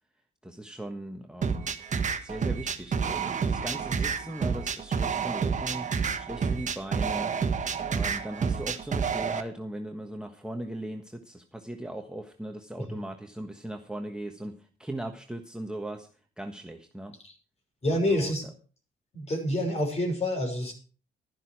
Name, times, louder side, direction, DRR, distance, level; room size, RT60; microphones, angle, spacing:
voice 1, 0.4-1.8 2.2-5.9 6.2-7.3 7.9-16.1 16.4-17.2 17.9-18.3, right 1 dB, 5° right, 3 dB, 1.4 m, -38 dB
sound 1, 1.4-9.4, right 6 dB, 40° right, 1.5 m, -29 dB
voice 2, 17.8-18.4 19.1-20.7, left 1 dB, 35° left, 4 dB, 5.8 m, -27 dB
12.5 x 11.0 x 4.7 m, 0.38 s
cardioid pair, 90°, 20 cm